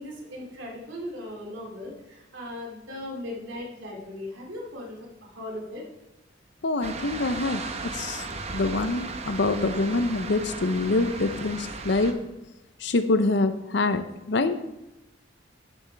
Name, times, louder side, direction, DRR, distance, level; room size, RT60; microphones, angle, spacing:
voice 1, 0.0-5.8, left 1 dB, 75° right, -2 dB, 2.5 m, -38 dB
voice 2, 6.6-7.6 7.9-8.2 8.5-12.1 12.8-14.6, left 2 dB, 60° left, 11 dB, 0.6 m, -25 dB
sound 1, 6.8-12.1, right 3 dB, 35° right, 0.8 m, -36 dB
12.0 x 7.0 x 3.4 m, 0.94 s
head